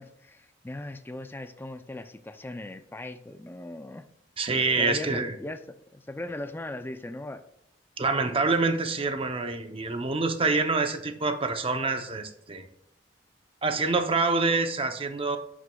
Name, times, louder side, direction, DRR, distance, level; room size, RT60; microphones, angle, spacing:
voice 1, 0.0-4.1 4.7-7.4, left 2 dB, 10° left, 10 dB, 0.4 m, -39 dB
voice 2, 4.4-5.3 8.0-12.7 13.6-15.4, right 3 dB, 30° right, 7 dB, 0.7 m, -26 dB
11.0 x 6.3 x 2.3 m, 0.73 s
head